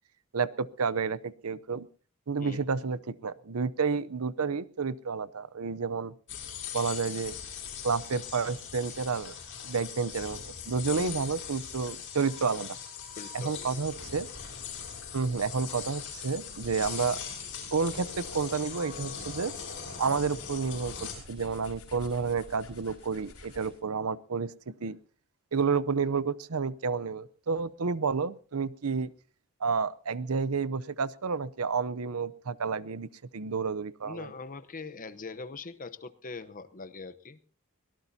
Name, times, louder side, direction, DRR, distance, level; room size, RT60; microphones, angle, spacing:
voice 1, 0.3-1.9 2.3-6.1 6.7-7.4 7.8-9.3 9.6-10.4 10.7-12.8 13.3-14.3 15.1-17.2 17.7-19.5 20.0-25.0 25.5-29.1 29.6-34.3, right 5 dB, 85° right, 18 dB, 0.7 m, -30 dB
sound 1, 6.3-21.1, left 7 dB, 60° left, 6.2 m, -40 dB
voice 2, 13.2-13.7 34.0-37.4, left 4 dB, 40° left, 12 dB, 0.9 m, -42 dB
sound 2, 13.5-23.9, left 3 dB, 75° left, 5.0 m, -51 dB
23.0 x 18.0 x 2.8 m, 0.39 s
head